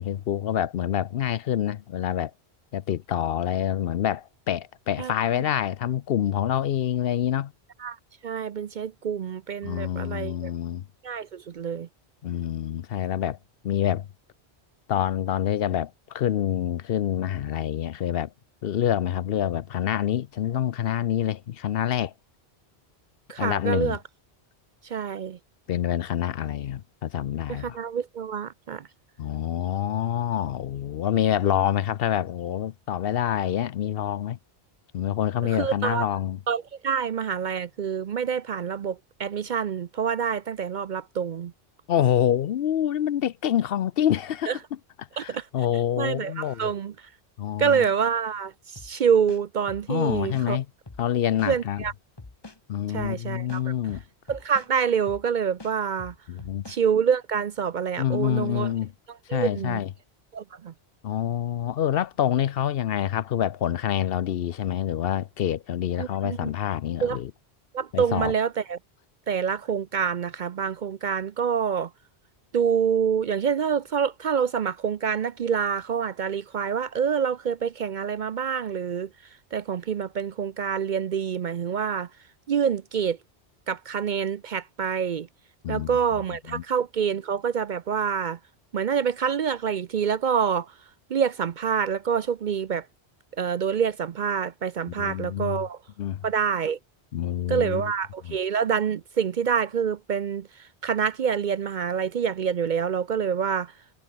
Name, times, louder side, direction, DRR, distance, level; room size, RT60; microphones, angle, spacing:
voice 1, 0.0-2.3 2.7-7.5 9.6-10.8 12.2-13.4 13.6-14.1 14.9-18.3 18.6-22.1 23.4-24.0 25.7-27.8 29.2-34.4 34.9-36.4 41.9-44.6 45.0-46.7 47.4-47.9 49.9-50.7 51.0-51.8 52.7-54.0 56.3-56.6 58.0-58.9 59.3-59.9 61.0-67.3 67.9-68.3 85.6-86.0 86.5-86.6 94.9-95.6 96.0-96.2 97.1-97.9 98.3-98.4, left 10 dB, 65° left, 0.8 m, -26 dB
voice 2, 8.2-10.5 11.0-11.9 23.3-24.0 24.8-25.4 27.5-28.9 35.5-36.1 36.5-41.5 44.5-44.6 45.2-45.5 46.0-46.9 47.6-50.6 51.5-51.9 52.9-53.7 54.3-56.1 56.7-58.7 59.3-59.8 60.3-60.7 66.0-66.5 67.0-67.2 67.7-68.8 69.3-71.9 72.5-79.1 79.5-82.1 82.5-83.2 83.7-85.3 85.7-88.4 88.7-90.7 91.1-92.8 93.4-95.8 96.2-96.8 97.5-103.7, right 7 dB, 55° right, 0.6 m, -26 dB
sound 1, 48.8-48.9 49.3-50.5 50.9-51.0 51.4-52.6 53.0-53.1 53.5-54.7 55.1-55.3 55.6-56.8, left 3 dB, 25° left, 1.3 m, -44 dB
omnidirectional pair, 1.1 m